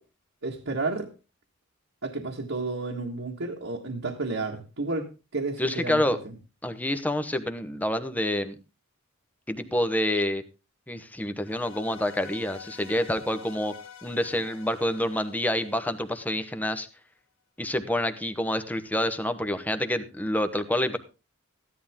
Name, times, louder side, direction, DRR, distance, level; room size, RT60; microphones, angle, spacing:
voice 1, 0.4-1.1 2.0-5.1 5.3-6.2, right 3 dB, 65° right, -1 dB, 1.8 m, -31 dB
voice 2, 5.6-6.2 6.6-8.6 9.5-10.4 10.9-13.7 14.0-16.9 17.6-21.0, left 1 dB, 10° left, 9 dB, 1.0 m, -27 dB
sound 1, 11.4-16.6, left 7 dB, 75° left, 1.7 m, -47 dB
15.0 x 11.0 x 3.7 m, 0.30 s
head